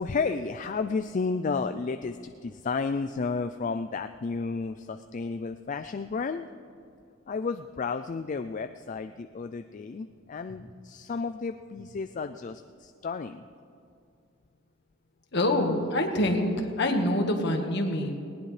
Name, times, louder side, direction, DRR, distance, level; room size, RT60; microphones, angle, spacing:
voice 1, 0.0-6.5 7.3-13.4, left 4 dB, 40° left, 9 dB, 0.4 m, -32 dB
voice 2, 15.3-18.2, left 1 dB, 60° left, 3 dB, 1.6 m, -26 dB
19.5 x 19.0 x 3.3 m, 2.4 s
head